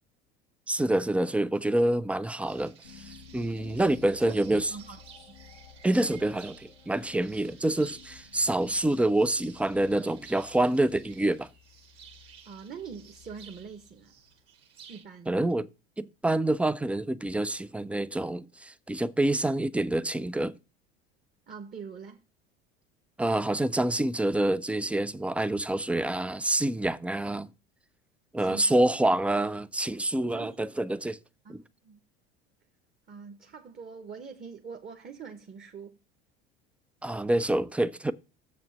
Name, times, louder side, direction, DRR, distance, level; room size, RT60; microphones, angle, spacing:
voice 1, 0.7-3.1 3.3-4.7 5.8-11.5 15.3-15.7 16.0-20.5 23.2-27.5 28.3-31.2 31.5-31.6 37.0-38.1, right 1 dB, 5° right, 0.3 m, -27 dB
sound 1, 2.5-15.0, right 8 dB, 45° right, 1.8 m, -54 dB
sound 2, 2.8-14.4, left 7 dB, 85° left, 1.3 m, -54 dB
voice 2, 4.1-5.0 5.3-5.4 12.4-14.2 14.9-15.4 21.5-22.2 28.4-28.9 30.3-30.6 31.4-32.0 33.1-36.0, right 6 dB, 30° right, 1.1 m, -43 dB
7.1 x 5.2 x 5.7 m
hypercardioid pair, 70°, 32 cm